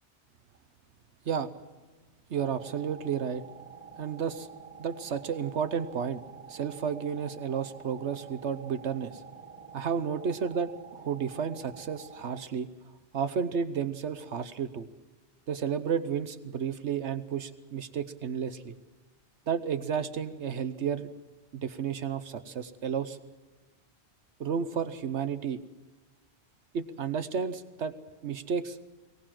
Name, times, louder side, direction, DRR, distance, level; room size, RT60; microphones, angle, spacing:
voice 1, 2.3-3.4 4.0-4.5 4.8-6.2 6.5-9.2 9.7-12.7 13.1-14.9 15.5-18.7 19.5-21.1 21.5-23.2 24.4-25.6 26.7-27.9 28.2-28.8, right 7 dB, 75° right, 11 dB, 1.2 m, -32 dB
sound 1, 2.4-12.4, right 5 dB, 30° right, 1.1 m, -48 dB
23.5 x 18.0 x 7.5 m, 1.2 s
omnidirectional pair, 1.2 m